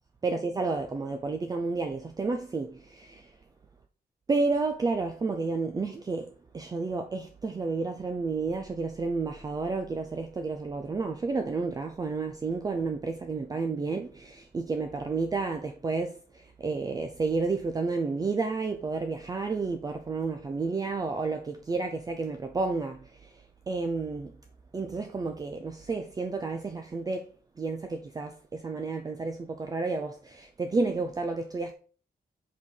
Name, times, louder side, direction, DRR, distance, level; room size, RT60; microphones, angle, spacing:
voice 1, 0.2-3.4 4.3-24.3 24.7-27.3 27.6-31.7, right 3 dB, 25° right, 0.5 m, -31 dB
5.0 x 4.1 x 5.4 m
wide cardioid pair, 180°, 16 cm